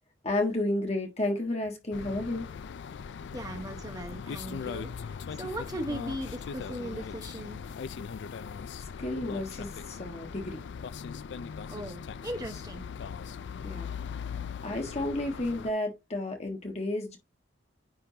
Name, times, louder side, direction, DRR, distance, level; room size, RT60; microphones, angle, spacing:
voice 1, 0.2-2.4 9.0-10.6 13.6-13.9 14.6-17.2, left 2 dB, 35° left, 1.6 m, -31 dB
sound 1, 1.9-15.7, left 6 dB, 65° left, 0.4 m, -39 dB
voice 2, 3.3-4.9 5.4-7.6 11.7-12.8, right 1 dB, 20° right, 1.1 m, -38 dB
9.7 x 3.7 x 2.8 m
head